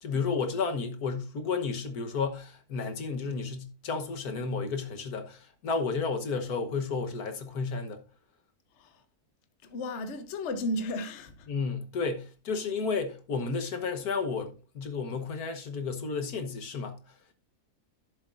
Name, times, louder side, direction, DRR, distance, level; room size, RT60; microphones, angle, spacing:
voice 1, 0.0-8.0 11.5-17.0, left 4 dB, 75° left, 1.7 m, -32 dB
voice 2, 9.6-11.5, left 1 dB, 50° left, 1.1 m, -34 dB
15.0 x 7.4 x 2.6 m
omnidirectional pair, 1.6 m